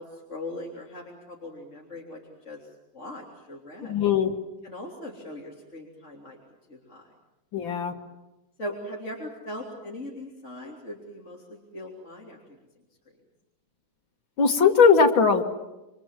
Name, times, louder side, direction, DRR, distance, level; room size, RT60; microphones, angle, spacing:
voice 1, 0.0-2.7 2.9-4.0 4.6-6.4 6.7-7.0 8.6-12.6, left 1 dB, 35° left, -2 dB, 3.7 m, -40 dB
voice 2, 3.9-4.3 7.5-8.0 14.4-15.4, left 5 dB, 80° left, 3 dB, 2.7 m, -19 dB
29.0 x 25.5 x 7.6 m, 1.0 s
omnidirectional pair, 2.1 m